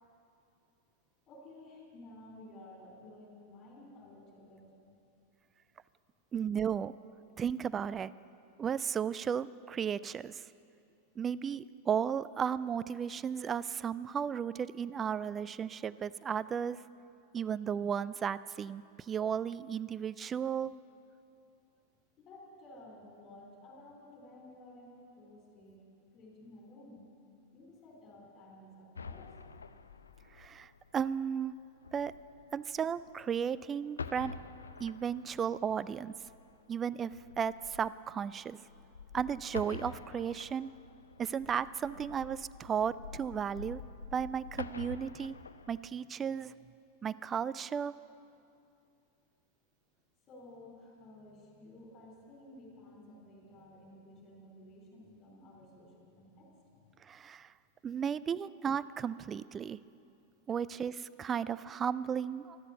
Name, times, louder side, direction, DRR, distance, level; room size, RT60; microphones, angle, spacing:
voice 1, 1.3-4.7 22.2-25.8 26.1-27.1 27.5-29.3 50.3-56.9 60.5-60.7, left 1 dB, 30° left, -2 dB, 3.7 m, -54 dB
voice 2, 6.3-6.9 7.4-8.1 8.6-10.4 11.2-16.8 17.3-20.7 30.4-31.5 31.9-32.1 32.5-34.3 34.8-36.1 36.7-38.6 39.1-40.7 41.2-43.8 44.1-45.3 45.7-46.5 47.0-47.9 57.0-57.5 57.8-59.8 60.5-62.6, right 7 dB, 25° right, 17 dB, 0.3 m, -34 dB
sound 1, 28.9-33.6 33.9-45.8, left 5 dB, 75° left, 0.4 m, -48 dB
12.5 x 12.5 x 7.0 m, 2.6 s
figure-of-eight pair, 90°, 0 cm